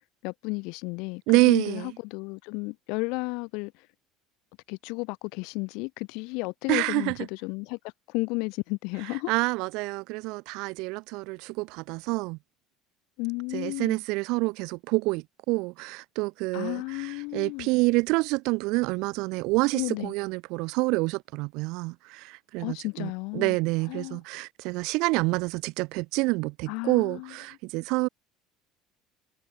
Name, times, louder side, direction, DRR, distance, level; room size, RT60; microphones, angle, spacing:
voice 1, 0.2-3.7 4.7-7.8 8.1-9.3 13.2-14.0 16.5-17.7 19.7-20.1 22.6-23.6 23.9-24.2 26.7-27.3, left 29 dB, 75° left, 0.6 m, -33 dB
voice 2, 1.3-1.9 6.7-7.2 9.0-12.4 13.5-28.1, right 25 dB, 70° right, 0.8 m, -27 dB
supercardioid pair, 105°, 0 cm